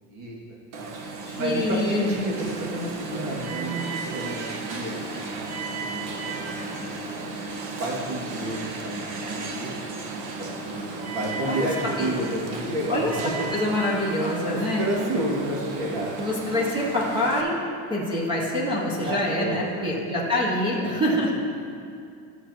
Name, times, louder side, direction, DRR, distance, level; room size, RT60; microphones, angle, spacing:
Alarm, 0.7-17.4, right 3 dB, 65° right, 1.0 m, -34 dB
voice 1, 0.7-1.1 1.4-3.7 4.1-7.2 7.8-9.7 10.1-13.5 14.5-16.2 19.0-20.1 20.8-21.4, right 1 dB, 80° right, -4 dB, 2.3 m, -31 dB
voice 2, 1.3-2.2 11.5-11.7 12.0-12.1 12.9-13.1 13.5-14.8 16.2-17.5 17.9-21.4, left 1 dB, 10° right, -5 dB, 0.7 m, -25 dB
13.5 x 7.1 x 2.9 m, 2.4 s
cardioid pair, 175°, 44 cm